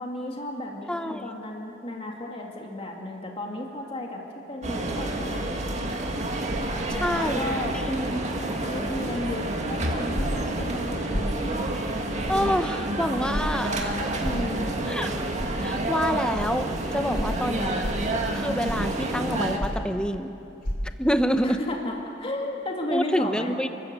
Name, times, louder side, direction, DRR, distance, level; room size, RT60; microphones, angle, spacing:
voice 1, 0.0-5.5 6.6-7.8 8.6-11.0 11.3-11.6 14.1-14.7 17.1-17.3 21.4-23.5, left 1 dB, 30° left, 0 dB, 2.4 m, -33 dB
voice 2, 0.9-1.2 6.9-7.5 7.7-8.2 12.3-14.1 14.9-15.1 15.6-17.8 18.3-20.3 21.0-21.6 22.9-23.7, equal, 5° left, 8 dB, 0.9 m, -27 dB
sound 1, 4.6-19.6, right 1 dB, 35° right, 2.0 m, -29 dB
sound 2, 10.1-10.5 11.1-11.3 12.3-12.4 13.3-13.5 14.2-14.5 15.4-15.5 16.4-16.5 17.1-17.4 17.8-18.1 18.7-18.9 19.6-19.9 20.6-20.8, equal, 45° left, 3.0 m, -29 dB
30.0 x 13.5 x 8.1 m, 2.7 s
head